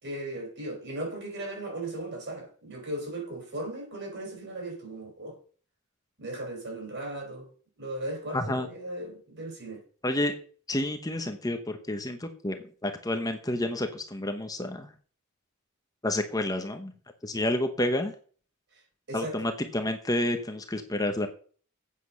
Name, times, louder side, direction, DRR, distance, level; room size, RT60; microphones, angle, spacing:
voice 1, 0.0-5.3 6.2-7.5 7.8-9.8 19.1-19.4, right 1 dB, 55° right, 4.8 m, -37 dB
voice 2, 8.3-8.7 10.0-10.3 10.7-14.9 16.0-16.9 17.2-18.1 19.1-21.3, left 1 dB, 15° left, 1.0 m, -29 dB
8.5 x 7.5 x 6.2 m
head